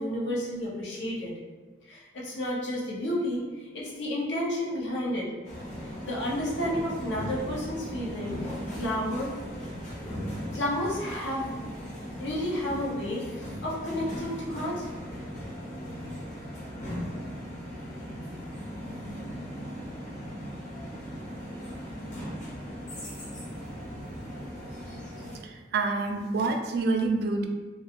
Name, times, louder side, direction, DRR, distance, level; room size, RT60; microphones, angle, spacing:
voice 1, 0.0-1.3 1.9-5.3 5.8-9.3 10.5-11.6 12.2-14.9, left 1 dB, 85° left, -4 dB, 0.7 m, -31 dB
sound 1, 5.4-25.4, equal, 45° left, 0.7 m, -38 dB
voice 2, 25.4-27.5, right 3 dB, 60° right, 4 dB, 0.3 m, -27 dB
2.4 x 2.2 x 2.8 m, 1.3 s
head